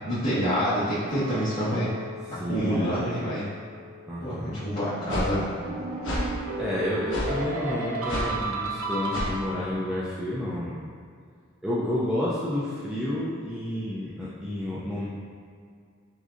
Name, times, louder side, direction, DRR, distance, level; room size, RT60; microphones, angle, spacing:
voice 1, 0.0-1.9 2.5-3.4 4.2-5.5, equal, 40° left, -16 dB, 1.2 m, -27 dB
Chink clink, 1.1-5.4 5.8-6.2, left 4 dB, 20° left, 1.4 m, -44 dB
voice 2, 2.3-3.0 4.1-4.5 6.6-10.9 11.6-15.1, left 1 dB, 5° right, -9 dB, 0.4 m, -30 dB
sound 1, 4.9-9.8, right 2 dB, 90° right, 0.6 m, -32 dB
sound 2, 5.1-5.3 6.0-6.3 7.1-7.3 8.1-8.3 9.1-9.3, left 1 dB, 60° left, 1.1 m, -29 dB
6.1 x 2.7 x 2.5 m, 2.2 s
head